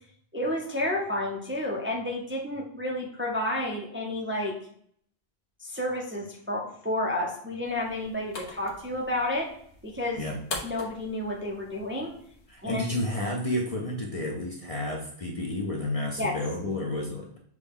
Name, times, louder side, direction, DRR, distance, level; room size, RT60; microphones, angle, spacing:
voice 1, 0.3-4.5 5.6-9.5 9.8-10.2 10.6-12.1 12.6-12.8 16.2-16.3, left 1 dB, 15° right, -1 dB, 0.5 m, -30 dB
sound 1, 7.7-12.7, left 3 dB, 85° left, 1.1 m, -43 dB
voice 2, 12.5-17.4, left 1 dB, 40° left, -1 dB, 0.6 m, -31 dB
6.2 x 2.2 x 3.5 m, 0.63 s
omnidirectional pair, 1.1 m